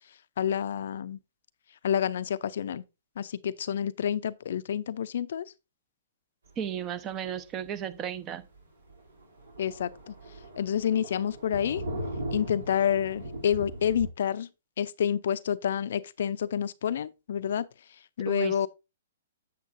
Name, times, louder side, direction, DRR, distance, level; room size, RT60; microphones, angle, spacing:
voice 1, 0.4-1.2 1.8-2.8 3.2-5.5 9.6-10.1 10.6-11.8 12.3-14.5 14.8-17.7 18.2-18.7, left 9 dB, 65° left, 0.5 m, -28 dB
voice 2, 6.6-8.5 18.2-18.7, right 9 dB, 25° right, 0.9 m, -34 dB
Thunder, 7.1-7.3 7.7-7.8 8.1-8.2 8.5-8.6 8.9-14.1, right 1 dB, 75° right, 2.9 m, -38 dB
8.3 x 7.5 x 2.6 m
hypercardioid pair, 120°, 0 cm